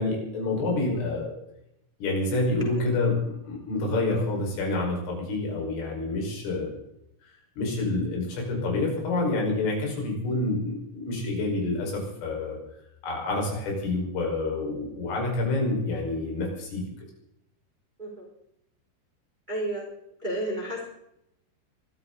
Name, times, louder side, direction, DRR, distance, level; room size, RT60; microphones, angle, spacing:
voice 1, 0.0-1.3 2.0-6.7 7.6-12.6 13.0-16.8, left 2 dB, 80° left, -1 dB, 7.8 m, -28 dB
voice 2, 19.5-19.9 20.2-20.9, right 1 dB, 10° right, -2 dB, 3.7 m, -32 dB
24.0 x 14.0 x 4.0 m, 0.81 s
omnidirectional pair, 5.7 m